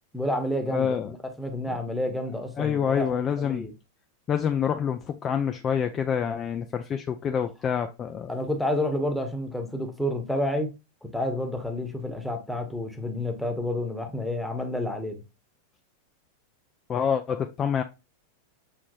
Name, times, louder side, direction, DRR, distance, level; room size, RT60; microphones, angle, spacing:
voice 1, 0.1-3.7 8.3-10.8 11.0-15.2, left 1 dB, ahead, 1.0 m, -30 dB
voice 2, 0.7-1.1 1.7-1.8 2.6-3.7 4.3-8.3 16.9-17.8, left 7 dB, 25° left, 0.4 m, -27 dB
6.5 x 3.0 x 2.5 m
figure-of-eight pair, 90°, 0 cm